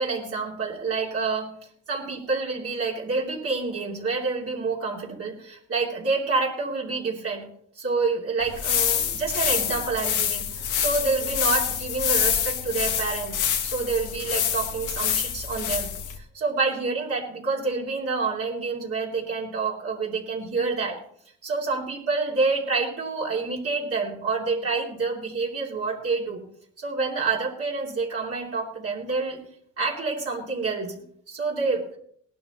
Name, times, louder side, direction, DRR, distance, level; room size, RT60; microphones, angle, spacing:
voice 1, 0.0-1.4 1.9-7.5 7.8-15.9 16.2-21.0 21.4-26.4 26.8-29.4 29.8-31.9, right 4 dB, 50° right, -4 dB, 3.0 m, -28 dB
sound 1, 8.4-16.2, left 8 dB, 85° left, 1.7 m, -26 dB
18.0 x 12.0 x 3.1 m, 0.64 s
cardioid pair, 90°, 30 cm